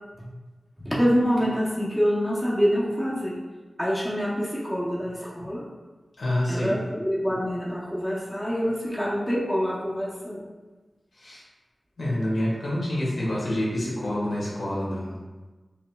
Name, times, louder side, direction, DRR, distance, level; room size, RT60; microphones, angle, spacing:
voice 1, 0.8-3.4 3.8-5.7 6.5-10.5, equal, 5° left, -5 dB, 0.7 m, -26 dB
voice 2, 6.2-6.7 11.2-11.4 12.0-15.1, left 1 dB, 75° left, -6 dB, 1.3 m, -27 dB
5.0 x 2.9 x 2.2 m, 1.2 s
wide cardioid pair, 100°, 0 cm